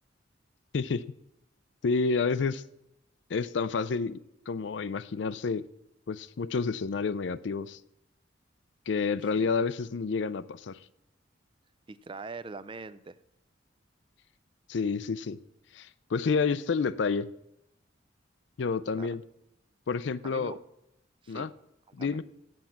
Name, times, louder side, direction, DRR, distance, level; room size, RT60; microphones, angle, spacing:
voice 1, 1.8-2.6 3.3-4.2 4.5-5.6 6.1-7.8 8.9-10.8 14.7-15.4 15.7-17.3 18.6-19.2 19.9-20.5 21.3-21.5 21.9-22.2, left 4 dB, 70° left, 16 dB, 0.4 m, -29 dB
voice 2, 11.9-13.2 18.9-19.1 20.2-20.6 21.2-21.5 21.9-22.2, right 4 dB, 25° right, 15 dB, 0.4 m, -42 dB
7.9 x 7.5 x 7.1 m, 0.86 s
head